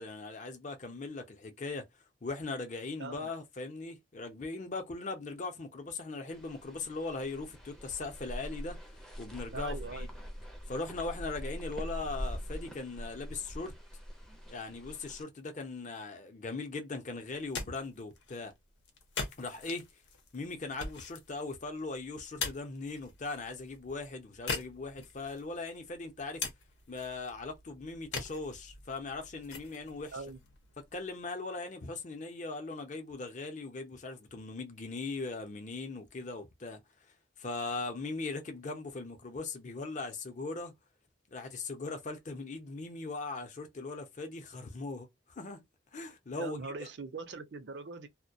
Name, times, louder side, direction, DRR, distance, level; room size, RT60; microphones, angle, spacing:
voice 1, 0.0-1.9 2.2-8.8 9.2-10.1 10.7-13.7 14.5-18.5 19.4-19.9 20.3-26.4 26.9-30.1 30.9-36.8 37.4-40.7 41.3-45.1 45.4-45.6 45.9-46.6, left 3 dB, 40° left, 0.6 m, -39 dB
voice 2, 3.0-3.3 9.5-10.1 30.1-30.4 46.4-48.1, right 4 dB, 70° right, 0.6 m, -41 dB
sound 1, 6.3-15.2, equal, 5° left, 0.5 m, -43 dB
sound 2, 17.3-31.2, left 4 dB, 80° left, 0.7 m, -44 dB
2.2 x 2.1 x 2.6 m
head